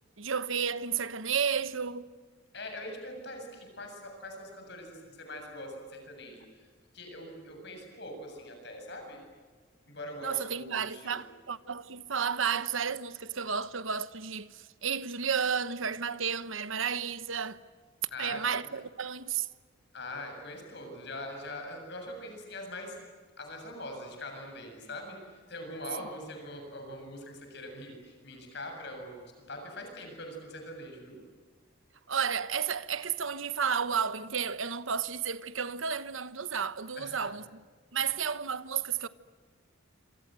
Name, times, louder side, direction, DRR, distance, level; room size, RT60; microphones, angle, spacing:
voice 1, 0.2-2.1 10.2-17.6 18.2-19.5 32.1-37.6 37.9-39.1, right 7 dB, 70° right, 1.1 m, -32 dB
voice 2, 2.5-6.7 6.9-9.2 9.9-11.2 18.1-18.5 19.9-23.0 23.4-31.2 37.0-37.3, left 1 dB, 55° left, 7.3 m, -42 dB
27.5 x 27.0 x 7.7 m
head